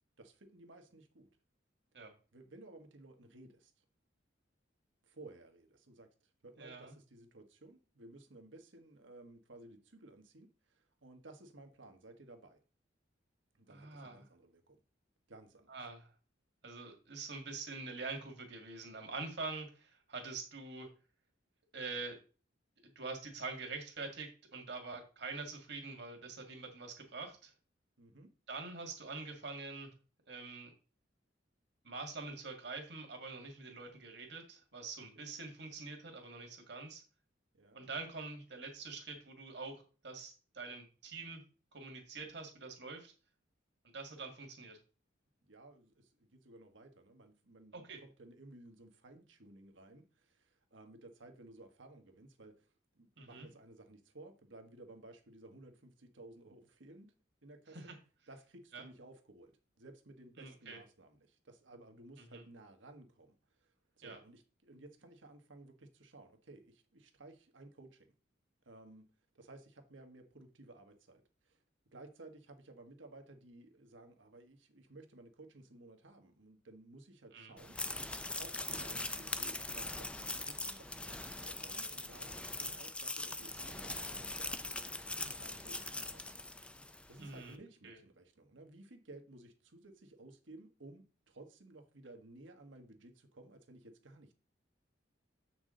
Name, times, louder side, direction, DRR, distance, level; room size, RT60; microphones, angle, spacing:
voice 1, 0.2-1.3 2.3-3.7 5.0-12.6 13.5-14.8 15.3-15.8 28.0-28.3 37.5-37.8 45.4-57.1 57.4-58.0 58.3-68.1 68.6-71.6 71.9-77.8 78.4-86.2 87.1-94.3, right 2 dB, 80° right, 1.3 m, -56 dB
voice 2, 6.6-6.9 13.7-14.2 15.7-16.1 16.6-20.9 21.7-22.2 23.0-27.5 28.5-29.9 30.3-30.7 31.8-37.0 37.7-41.4 41.7-43.1 43.9-44.8 47.7-48.0 53.2-53.5 57.7-57.9 58.7-58.8 60.4-60.8 62.3-62.4 64.0-64.2 77.3-77.5 78.1-78.2 87.2-87.6 87.8-88.0, right 3 dB, 60° right, 1.9 m, -45 dB
sound 1, 77.6-87.1, left 2 dB, 5° left, 0.4 m, -41 dB
7.9 x 5.9 x 3.8 m
head